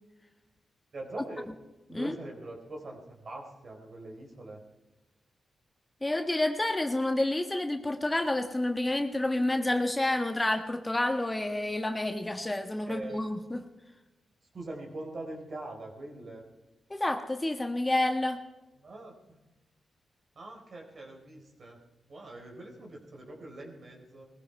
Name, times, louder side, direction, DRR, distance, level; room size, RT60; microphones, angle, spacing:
voice 1, 0.9-1.5 1.9-4.6 12.8-13.2 14.5-16.4 18.8-19.4 20.3-21.8 22.1-24.3, right 2 dB, 55° right, 1 dB, 4.4 m, -43 dB
voice 2, 6.0-13.6 16.9-18.4, left 1 dB, 20° left, 6 dB, 1.5 m, -29 dB
20.5 x 14.5 x 4.6 m, 1.1 s
cardioid pair, 70°, 0 cm